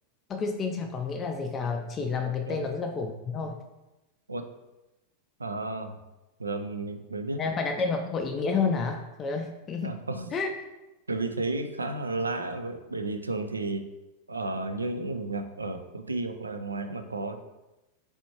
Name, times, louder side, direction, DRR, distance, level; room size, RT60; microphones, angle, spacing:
voice 1, 0.3-3.6 7.4-10.0 10.3-10.5, left 4 dB, 25° left, 5 dB, 0.3 m, -30 dB
voice 2, 5.4-6.0 6.4-7.4 9.8-10.3 11.1-13.9 14.3-17.4, right 2 dB, 80° right, 8 dB, 0.3 m, -32 dB
4.1 x 3.4 x 2.9 m, 1.0 s
figure-of-eight pair, 90°, 0 cm